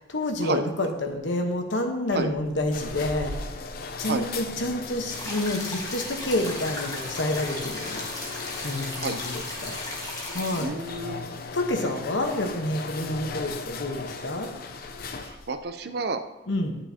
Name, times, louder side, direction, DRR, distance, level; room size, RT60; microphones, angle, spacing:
voice 1, 0.1-3.3 4.0-8.1 8.6-9.8 10.3-10.7 11.1-14.5 16.5-16.8, left 1 dB, 80° left, 4 dB, 1.1 m, -28 dB
sound 1, 2.1-15.6, left 4 dB, 55° left, 0.6 m, -38 dB
sound 2, 5.1-10.6, left 2 dB, 20° left, 1.5 m, -36 dB
voice 2, 10.6-11.2 11.8-12.2 15.1-16.2, right 3 dB, 60° right, 9 dB, 0.6 m, -31 dB
9.6 x 8.7 x 2.8 m, 1.1 s
head